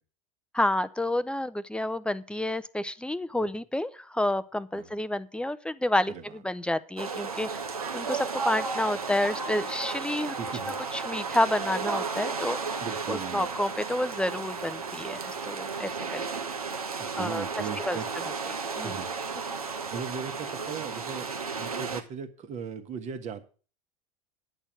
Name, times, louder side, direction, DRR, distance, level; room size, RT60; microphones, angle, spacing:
voice 1, 0.5-7.5 7.9-10.3 10.6-12.8 13.1-16.2 17.2-17.4 17.8-18.0 18.5-18.9, left 1 dB, 5° left, 14 dB, 0.5 m, -29 dB
sound 1, 7.0-22.0, right 5 dB, 90° right, 1.1 m, -34 dB
voice 2, 10.4-10.8 12.8-13.5 17.0-18.1 18.8-19.1 19.9-21.3 21.6-23.4, right 7 dB, 40° right, 8 dB, 1.5 m, -38 dB
9.9 x 6.4 x 7.5 m, 0.37 s
hypercardioid pair, 80°, 18 cm